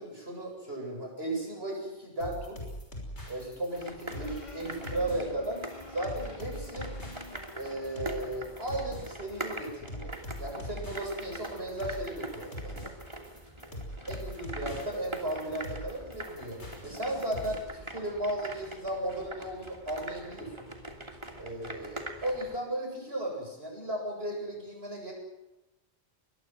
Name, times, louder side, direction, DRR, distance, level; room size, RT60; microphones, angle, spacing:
voice 1, 0.0-2.6 3.2-5.6 5.9-6.9 7.5-12.9 14.1-20.7 21.4-25.1, right 1 dB, 65° right, 0 dB, 8.3 m, -35 dB
sound 1, 2.2-17.6, equal, 80° left, 6.1 m, -42 dB
sound 2, 3.7-22.6, right 1 dB, 25° right, 2.9 m, -43 dB
sound 3, 4.1-8.7, left 2 dB, 40° left, 2.7 m, -49 dB
23.5 x 20.5 x 7.9 m, 0.98 s
omnidirectional pair, 1.1 m